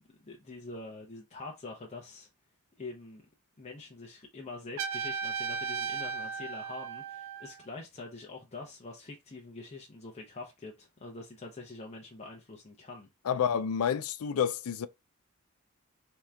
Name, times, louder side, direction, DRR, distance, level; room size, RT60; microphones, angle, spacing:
voice 1, 0.1-2.3 2.8-3.3 3.6-13.1, left 3 dB, 30° left, 0.7 m, -45 dB
Trumpet, 4.8-7.6, right 6 dB, 65° right, 0.4 m, -36 dB
voice 2, 13.3-14.9, left 7 dB, 70° left, 0.4 m, -29 dB
3.6 x 2.9 x 3.4 m
head